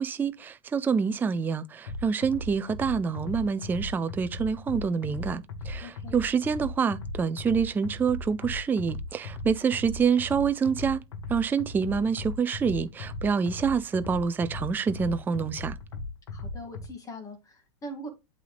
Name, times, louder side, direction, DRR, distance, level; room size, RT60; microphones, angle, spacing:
voice 1, 0.0-11.0 11.3-15.8, right 6 dB, 10° right, 0.4 m, -27 dB
sound 1, 1.9-16.9, left 2 dB, 80° left, 1.4 m, -38 dB
voice 2, 5.8-6.1 16.3-18.1, equal, 20° left, 2.4 m, -41 dB
8.1 x 3.9 x 3.3 m
hypercardioid pair, 120°, 16 cm